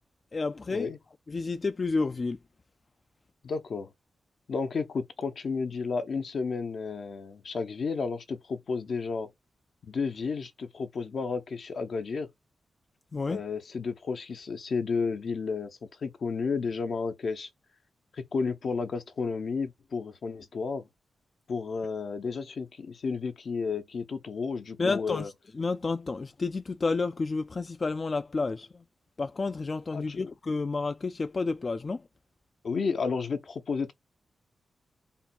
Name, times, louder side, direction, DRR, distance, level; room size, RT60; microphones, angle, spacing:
voice 1, 0.3-0.9 1.3-2.4 13.1-13.4 24.8-25.3 25.6-28.7 29.2-32.0, left 3 dB, 40° left, 0.3 m, -30 dB
voice 2, 3.4-3.9 4.5-9.3 9.8-12.3 13.3-17.5 18.1-20.9 21.5-25.3 29.9-30.2 32.6-33.9, left 5 dB, 65° left, 0.8 m, -32 dB
3.5 x 2.3 x 4.3 m
cardioid pair, 75°, 0 cm